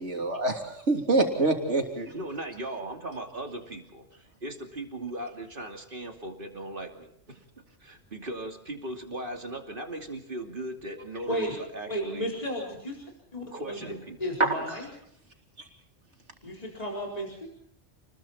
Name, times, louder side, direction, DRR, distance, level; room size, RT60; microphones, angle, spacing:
voice 1, 0.0-2.2 14.4-14.7, right 2 dB, 85° right, 2 dB, 3.7 m, -26 dB
voice 2, 2.1-12.3 13.5-14.2, right 1 dB, 50° right, 4 dB, 2.9 m, -38 dB
voice 3, 11.9-13.0 13.3-13.9 14.2-14.9 16.4-17.5, equal, 35° left, -2 dB, 4.5 m, -33 dB
29.5 x 21.0 x 4.4 m, 0.68 s
omnidirectional pair, 1.2 m